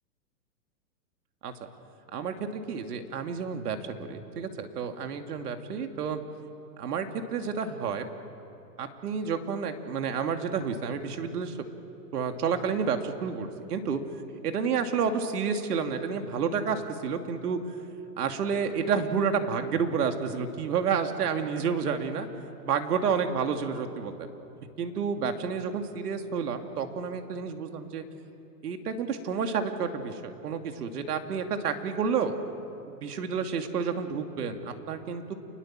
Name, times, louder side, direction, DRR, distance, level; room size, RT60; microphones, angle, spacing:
voice 1, 2.1-6.2 6.8-8.1 8.8-11.6 12.1-14.0 14.4-17.8 18.2-22.3 22.6-24.3 24.8-28.0 28.6-32.4 32.9-35.3, right 6 dB, 70° right, 5 dB, 2.6 m, -30 dB
28.5 x 20.5 x 7.6 m, 2.8 s
hypercardioid pair, 145°, 48 cm